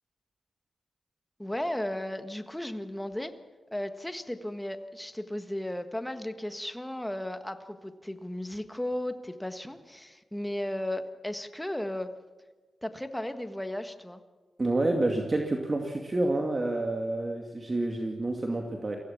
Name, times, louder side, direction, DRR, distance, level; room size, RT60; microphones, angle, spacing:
voice 1, 1.4-3.3 3.7-12.1 12.8-14.2, left 1 dB, 10° left, 8 dB, 1.6 m, -35 dB
voice 2, 14.6-19.0, right 2 dB, 35° right, 2 dB, 2.3 m, -28 dB
23.5 x 16.5 x 7.2 m, 1.3 s
cardioid pair, 75°, 0 cm